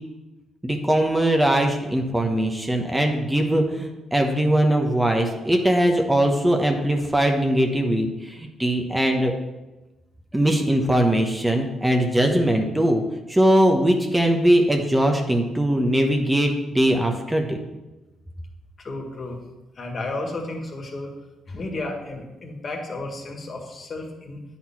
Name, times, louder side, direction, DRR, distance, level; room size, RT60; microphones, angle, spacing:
voice 1, 0.6-9.3 10.3-13.0 13.3-17.6, right 1 dB, 10° right, 3 dB, 1.0 m, -21 dB
voice 2, 18.8-19.4 19.8-21.1 21.5-24.4, left 2 dB, 40° left, 2 dB, 1.8 m, -32 dB
9.3 x 4.4 x 5.8 m, 1.1 s
cardioid pair, 90°, 0 cm